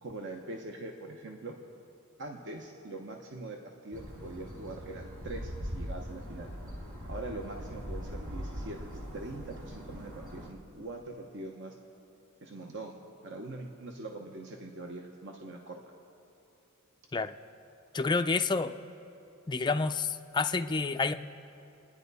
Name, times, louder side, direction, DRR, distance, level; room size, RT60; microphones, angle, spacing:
voice 1, 0.0-1.6 2.2-6.5 7.1-11.8 12.4-15.8, right 2 dB, 55° right, 2 dB, 0.9 m, -43 dB
sound 1, 3.9-10.5, equal, 70° right, 2.1 m, -41 dB
voice 2, 17.9-18.8 19.5-21.1, left 4 dB, 20° left, 8 dB, 0.4 m, -29 dB
28.0 x 10.0 x 4.1 m, 2.7 s
head